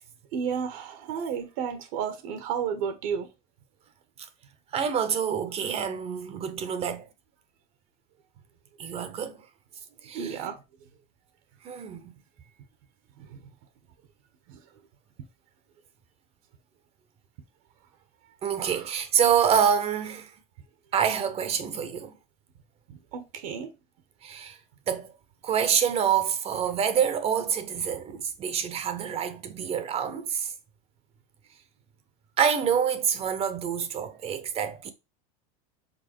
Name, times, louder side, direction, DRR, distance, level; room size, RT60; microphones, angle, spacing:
voice 1, 0.3-3.3 10.1-10.6 18.6-18.7 22.9-23.7, right 7 dB, 65° right, 1.3 m, -32 dB
voice 2, 4.7-7.1 8.8-9.4 10.0-10.5 11.6-12.1 18.4-20.3 20.9-22.1 24.2-24.6 24.9-25.1 25.4-30.5 32.4-34.9, right 8 dB, 30° right, 0.9 m, -27 dB
5.3 x 4.0 x 4.4 m
supercardioid pair, 135°, 20 cm